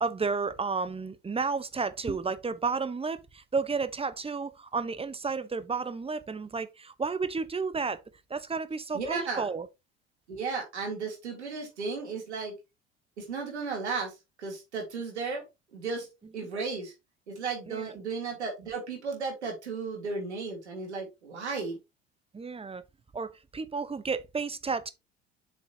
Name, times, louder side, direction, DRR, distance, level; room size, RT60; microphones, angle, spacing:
voice 1, 0.0-8.0 8.3-9.7 17.7-18.0 22.3-22.8 23.1-24.9, right 4 dB, 15° right, 1.0 m, -32 dB
voice 2, 8.9-9.5 10.3-12.5 13.2-15.4 15.7-16.1 16.3-16.9 17.3-21.8, right 4 dB, 85° right, 3.2 m, -34 dB
7.4 x 6.4 x 2.9 m
hypercardioid pair, 65°, 33 cm